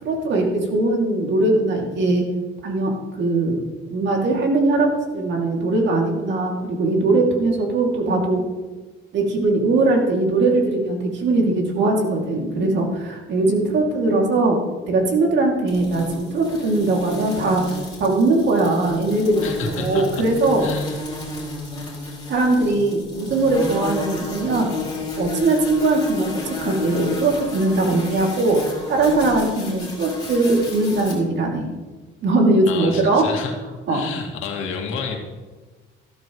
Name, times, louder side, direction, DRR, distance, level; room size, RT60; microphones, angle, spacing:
voice 1, 0.0-2.2 2.6-3.6 3.9-8.4 9.1-14.6 14.9-17.7 18.0-20.6 22.3-24.7 25.2-28.6 28.9-31.7 32.2-33.3 33.9-34.0, right 2 dB, 60° right, 1 dB, 2.6 m, -20 dB
sound 1, 15.7-31.1, left 3 dB, 20° left, 4.1 m, -32 dB
voice 2, 19.4-20.1 20.6-21.2 32.7-33.5 33.9-35.2, left 5 dB, 80° left, 1 dB, 2.2 m, -30 dB
13.5 x 12.0 x 3.1 m, 1.3 s
cardioid pair, 120°, 21 cm